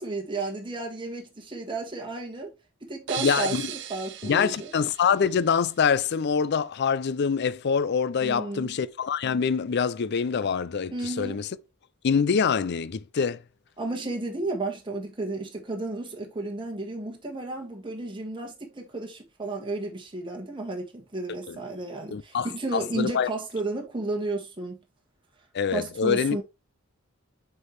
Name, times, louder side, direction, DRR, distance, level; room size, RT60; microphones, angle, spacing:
voice 1, 0.0-2.5 2.8-4.7 8.2-8.8 10.9-11.4 13.8-24.8 25.7-26.4, right 2 dB, 25° right, 1.5 m, -33 dB
sound 1, 3.1-5.8, right 10 dB, 60° right, 0.7 m, -37 dB
voice 2, 3.2-3.7 4.2-11.5 12.0-13.4 21.5-21.6 22.1-23.3 25.5-26.4, left 6 dB, 55° left, 0.4 m, -25 dB
6.5 x 4.6 x 3.3 m
head